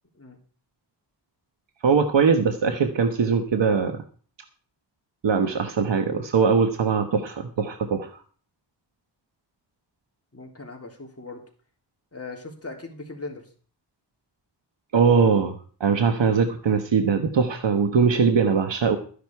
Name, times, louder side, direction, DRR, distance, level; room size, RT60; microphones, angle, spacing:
voice 1, 1.8-4.0 5.2-8.1 14.9-19.0, right 5 dB, 85° right, 7 dB, 1.3 m, -21 dB
voice 2, 10.3-11.4 12.1-13.5, left 3 dB, 35° left, 1 dB, 3.4 m, -39 dB
14.0 x 10.5 x 4.7 m, 0.43 s
wide cardioid pair, 95°, 43 cm